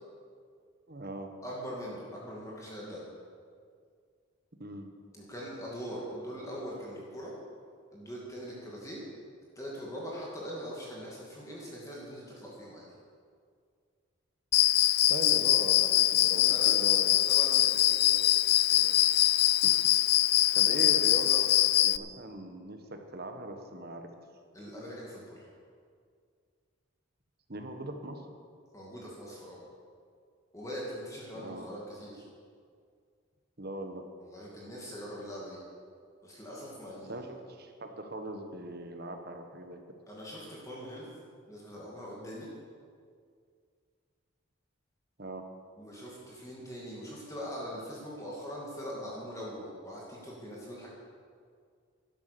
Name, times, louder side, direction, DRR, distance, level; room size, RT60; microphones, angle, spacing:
voice 1, 0.9-1.3 4.6-4.9 15.1-17.2 19.6-19.7 20.5-21.5 21.8-24.1 27.5-28.2 31.4-31.7 33.6-34.1 37.1-39.8 45.2-45.5, right 1 dB, 45° right, 5 dB, 1.3 m, -40 dB
voice 2, 1.4-3.0 5.1-7.3 7.9-9.0 9.6-12.8 16.3-16.8 17.3-18.3 18.7-18.9 24.5-25.4 28.7-29.6 30.5-32.2 34.2-35.6 36.2-37.3 40.1-41.1 41.5-42.5 45.8-50.9, equal, 15° left, -5 dB, 2.4 m, -42 dB
Cricket, 14.5-22.0, left 14 dB, 50° left, 0.3 m, -23 dB
12.0 x 11.5 x 6.9 m, 2.1 s
head